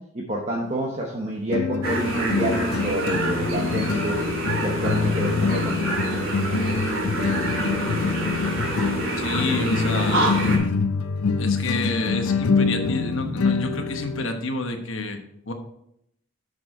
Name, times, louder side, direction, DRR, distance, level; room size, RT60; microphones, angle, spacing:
voice 1, 0.0-4.2 4.6-6.6, right 1 dB, 30° right, -1 dB, 0.9 m, -28 dB
sound 1, 0.6-0.7 1.5-14.3, left 4 dB, 90° left, 0.5 m, -25 dB
sound 2, 1.8-10.6, right 1 dB, 70° right, 2.5 m, -27 dB
voice 2, 7.4-8.0 9.2-10.2 11.4-15.2 15.4-15.5, left 3 dB, 65° left, 5 dB, 1.1 m, -29 dB
7.4 x 6.1 x 4.2 m, 0.75 s
head